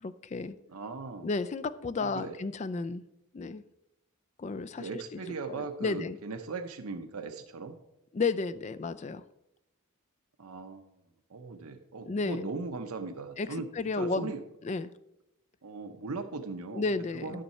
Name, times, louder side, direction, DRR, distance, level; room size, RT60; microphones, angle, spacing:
voice 1, 0.0-0.6 1.2-3.0 3.3-3.6 4.4-5.2 5.5-6.2 8.1-9.2 12.1-12.5 13.4-13.5 13.7-14.3 14.6-14.9 16.7-17.4, left 3 dB, 30° left, 13 dB, 0.3 m, -32 dB
voice 2, 0.7-1.3 2.0-2.4 4.8-7.8 10.4-10.9 11.3-13.7 14.0-14.4 15.6-16.8 17.2-17.4, right 4 dB, 85° right, 7 dB, 0.7 m, -38 dB
9.9 x 6.5 x 4.3 m, 0.85 s
head